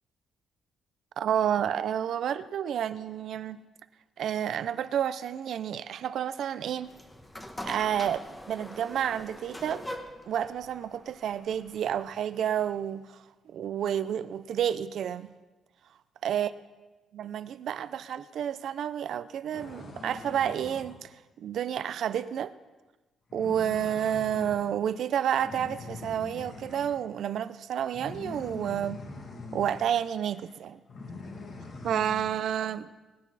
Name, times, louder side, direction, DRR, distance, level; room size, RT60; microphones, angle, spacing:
voice 1, 1.2-3.6 4.2-6.9 7.6-9.8 10.3-13.2 13.5-15.3 16.2-16.5 17.1-21.1 21.4-22.5 23.3-29.0 29.5-30.8 31.8-32.9, right 9 dB, 70° right, 0.6 m, -30 dB
sound 1, 6.8-12.1, left 1 dB, 10° left, 1.3 m, -43 dB
sound 2, 19.5-21.0 23.3-24.7 25.4-27.0 27.9-29.9 30.3-30.5 30.9-32.3, left 3 dB, 50° left, 2.3 m, -43 dB
21.5 x 9.7 x 4.2 m
cardioid pair, 90°, 0 cm